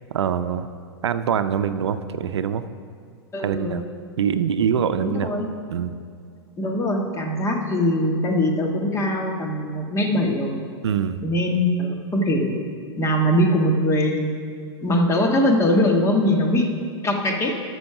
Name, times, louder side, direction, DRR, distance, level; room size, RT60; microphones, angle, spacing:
voice 1, 0.1-0.7 1.0-2.6 3.4-3.8 4.2-5.3 5.7-5.9 10.8-11.2, right 8 dB, 85° right, 11 dB, 0.5 m, -24 dB
voice 2, 3.3-3.8 5.0-5.4 6.6-10.6 11.2-12.6 13.0-14.3 14.8-16.7 17.0-17.6, left 1 dB, 20° left, 2 dB, 1.5 m, -21 dB
12.0 x 6.3 x 5.8 m, 2.3 s
hypercardioid pair, 115°, 14 cm